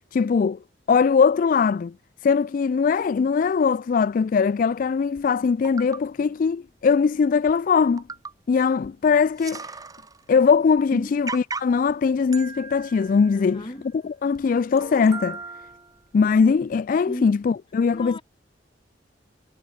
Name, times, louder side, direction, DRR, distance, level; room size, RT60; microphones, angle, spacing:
voice 1, 0.1-0.6 0.9-1.9 2.2-8.0 8.5-9.7 10.3-13.7 13.9-15.4 16.1-18.2, left 5 dB, 45° left, 0.3 m, -21 dB
sound 1, 5.2-5.3 5.6-6.0 7.0-7.1 7.5-7.6 8.0-8.5 8.8-8.9 9.2-10.3 10.7-10.8 11.3-11.9 12.3-13.9 14.4-14.5 14.8-16.1 16.7-16.8, right 4 dB, 20° right, 1.6 m, -37 dB
voice 2, 13.3-13.8 17.1-17.3 17.9-18.2, equal, 25° left, 5.0 m, -34 dB
head